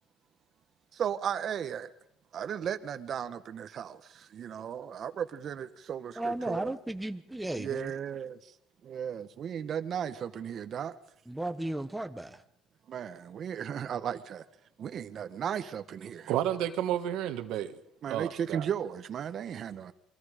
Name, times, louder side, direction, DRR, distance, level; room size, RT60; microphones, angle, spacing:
voice 1, 0.9-1.9 2.3-6.7 7.6-8.4 8.8-10.9 12.9-14.4 14.8-16.3 18.0-19.9, right 8 dB, 45° right, 1.1 m, -35 dB
voice 2, 6.2-7.9 11.3-12.4, right 1 dB, 5° right, 1.0 m, -34 dB
voice 3, 16.3-17.8 18.1-18.7, right 11 dB, 75° right, 1.6 m, -31 dB
28.5 x 23.0 x 5.0 m
cardioid pair, 125°, 0 cm